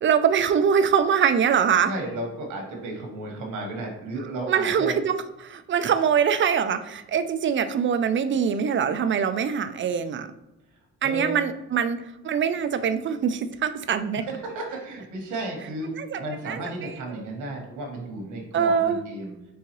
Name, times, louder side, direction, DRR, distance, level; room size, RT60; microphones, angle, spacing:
voice 1, 0.0-1.9 4.5-10.3 11.0-14.2 16.0-16.9 18.5-19.0, right 7 dB, 40° right, 11 dB, 0.4 m, -23 dB
voice 2, 1.8-5.0 11.0-11.3 14.2-19.4, right 2 dB, 85° right, 1 dB, 1.4 m, -33 dB
4.6 x 3.6 x 3.1 m, 0.93 s
cardioid pair, 90°, 30 cm